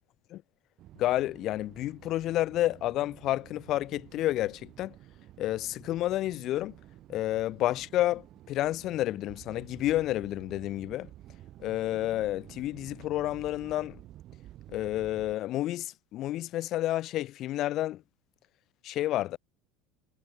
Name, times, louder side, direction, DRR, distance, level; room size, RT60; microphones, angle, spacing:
sound 1, 0.8-15.4, right 13 dB, 50° right, 4.7 m, -51 dB
voice 1, 1.0-4.9 5.4-6.7 7.1-11.1 11.6-14.0 14.7-18.0 18.8-19.4, left 14 dB, 50° left, 0.8 m, -30 dB
supercardioid pair, 100°, 0 cm